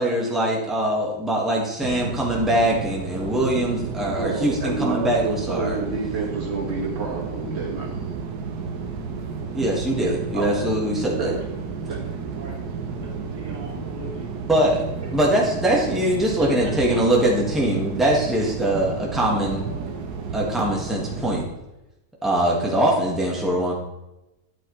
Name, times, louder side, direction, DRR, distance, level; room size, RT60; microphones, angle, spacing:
voice 1, 0.0-5.8 9.5-11.3 14.5-14.8 15.1-19.6 20.3-21.4 22.2-23.7, right 1 dB, ahead, -3 dB, 1.6 m, -22 dB
sound 1, 1.8-21.5, right 5 dB, 70° right, 1.4 m, -32 dB
voice 2, 3.9-7.9 9.9-10.7 11.2-12.1, right 4 dB, 40° right, -3 dB, 2.2 m, -29 dB
voice 3, 12.9-14.3 16.4-17.2 19.3-20.0, equal, 90° right, -3 dB, 3.3 m, -40 dB
10.5 x 8.5 x 3.2 m, 0.95 s
omnidirectional pair, 1.8 m